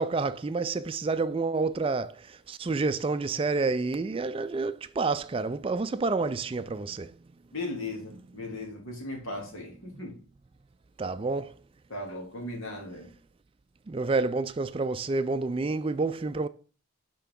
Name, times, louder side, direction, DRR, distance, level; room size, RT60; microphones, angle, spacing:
voice 1, 0.0-7.2 11.0-11.5 13.9-16.5, right 3 dB, 25° right, 0.3 m, -29 dB
voice 2, 7.5-10.2 11.9-13.1, left 2 dB, 80° left, 2.6 m, -37 dB
11.5 x 4.5 x 3.7 m
head